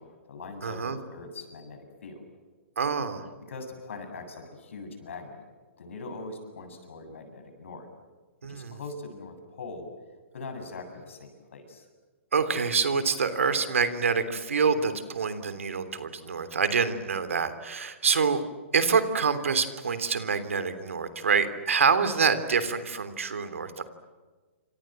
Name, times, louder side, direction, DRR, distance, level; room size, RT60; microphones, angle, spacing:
voice 1, 0.0-2.2 3.5-5.4 5.8-7.9 8.4-9.9 10.3-11.9, left 3 dB, 70° left, 6 dB, 7.9 m, -42 dB
voice 2, 0.6-1.0 2.8-3.3 8.4-8.8 12.3-18.4 18.7-23.8, right 5 dB, 80° right, 11 dB, 3.3 m, -26 dB
29.0 x 26.5 x 7.8 m, 1.4 s
hypercardioid pair, 130°, 7 cm